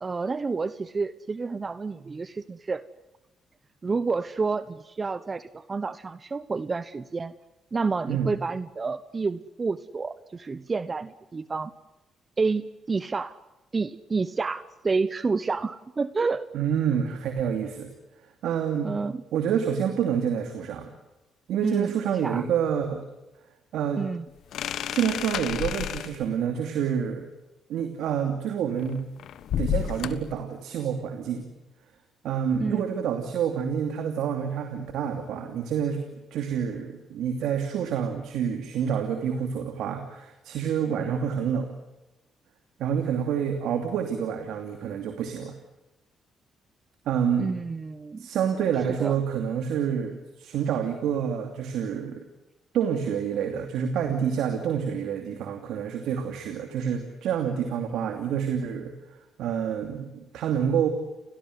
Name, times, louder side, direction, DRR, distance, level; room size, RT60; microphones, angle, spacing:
voice 1, 0.0-2.8 3.8-7.3 7.7-11.7 12.4-13.4 13.7-16.5 18.8-19.2 21.6-22.4 24.0-24.3 32.6-32.9 47.4-48.2 49.0-49.2, right 4 dB, 35° right, 15 dB, 0.9 m, -29 dB
voice 2, 16.5-17.9 18.4-18.9 19.3-20.9 21.5-23.0 23.7-24.0 24.9-27.3 27.7-29.0 29.6-31.5 32.2-36.0 36.3-41.7 42.8-45.5 47.1-47.5 48.2-52.2 52.7-58.9 59.4-60.9, right 8 dB, 80° right, 6 dB, 2.7 m, -28 dB
sound 1, 24.5-26.3 28.8-30.3, left 10 dB, 75° left, 1.3 m, -30 dB
30.0 x 18.0 x 9.6 m, 1.0 s
cardioid pair, 75°, 0 cm